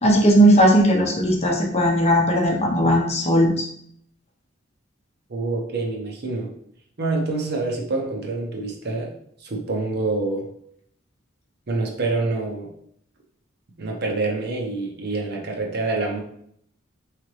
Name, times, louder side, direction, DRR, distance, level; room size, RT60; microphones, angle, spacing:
voice 1, 0.0-3.6, equal, 35° left, -1 dB, 0.8 m, -17 dB
voice 2, 5.3-6.5 7.0-9.1 9.4-10.5 11.7-12.7 13.8-16.2, right 3 dB, 55° right, 0 dB, 0.8 m, -26 dB
3.8 x 3.2 x 3.1 m, 0.67 s
head